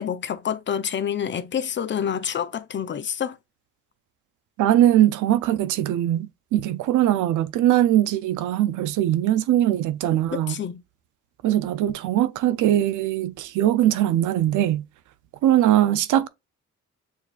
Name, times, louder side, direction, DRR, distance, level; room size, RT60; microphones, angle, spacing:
voice 1, 0.0-3.4 10.3-10.8, left 8 dB, 40° left, 0.5 m, -28 dB
voice 2, 4.6-10.6 11.4-14.8 15.4-16.3, right 12 dB, 80° right, 0.5 m, -21 dB
7.0 x 2.4 x 2.4 m
cardioid pair, 90°, 30 cm